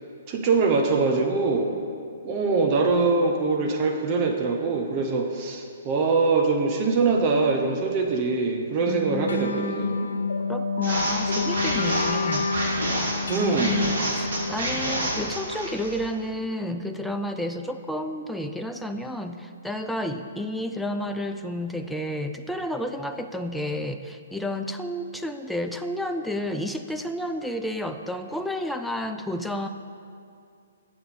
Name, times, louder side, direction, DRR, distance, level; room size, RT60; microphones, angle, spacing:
voice 1, 0.3-1.7 2.2-9.9 13.3-13.8, right 4 dB, 35° right, 3 dB, 0.7 m, -23 dB
voice 2, 8.9-9.8 10.5-12.5 13.3-29.7, left 1 dB, ahead, 6 dB, 0.3 m, -31 dB
sound 1, 9.3-16.1, left 3 dB, 70° left, 0.6 m, -29 dB
sound 2, 10.8-16.1, right 1 dB, 70° right, 2.2 m, -28 dB
8.6 x 6.9 x 4.1 m, 2.4 s
figure-of-eight pair, 125°, 0 cm